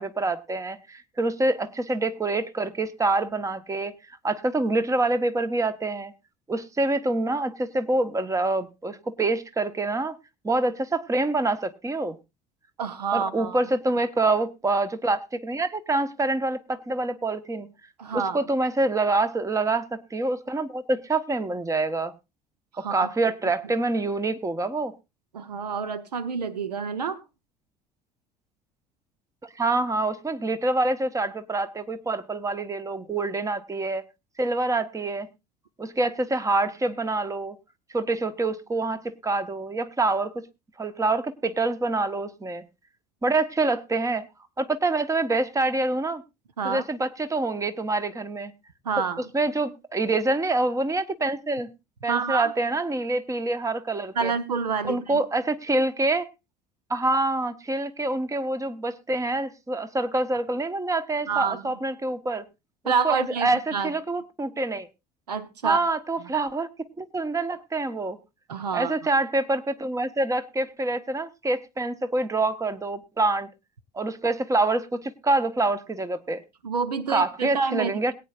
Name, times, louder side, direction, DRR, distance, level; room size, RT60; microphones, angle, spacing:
voice 1, 0.0-4.0 4.2-6.1 6.5-10.1 10.4-12.2 13.1-17.7 18.1-22.1 22.8-24.9 29.5-34.0 34.4-35.3 35.8-37.6 37.9-40.5 40.8-42.6 43.2-44.2 44.6-46.2 46.6-48.5 49.3-51.7 52.0-54.3 54.8-56.3 56.9-62.4 63.0-64.9 65.6-66.7 67.0-68.2 68.7-73.5 73.9-76.4 77.1-78.1, right 2 dB, 15° right, 1.1 m, -26 dB
voice 2, 12.8-13.6 18.0-18.4 22.7-23.1 25.3-27.2 46.6-46.8 48.8-49.2 52.1-52.5 54.1-55.2 61.3-61.7 62.8-63.9 65.3-65.8 66.2-66.4 68.5-68.9 76.6-78.1, right 5 dB, 75° right, 0.9 m, -28 dB
21.5 x 9.2 x 2.5 m
figure-of-eight pair, 60°, 21 cm